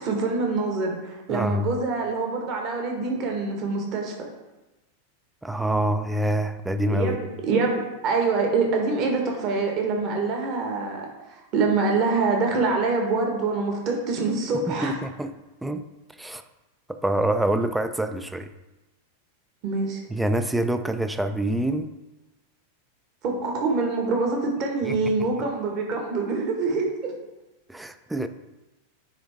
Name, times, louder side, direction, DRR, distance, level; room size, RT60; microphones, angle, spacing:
voice 1, 0.0-4.1 6.9-15.0 19.6-20.0 23.2-27.1, right 3 dB, 40° right, 1 dB, 1.5 m, -25 dB
voice 2, 1.3-1.7 5.4-7.2 14.5-15.3 15.6-15.8 16.2-16.4 16.9-18.5 20.1-21.9 24.9-25.0 25.2-25.3 27.7-28.3, right 1 dB, 5° right, 9 dB, 0.4 m, -26 dB
9.7 x 3.6 x 3.5 m, 1.1 s
figure-of-eight pair, 90°, 0 cm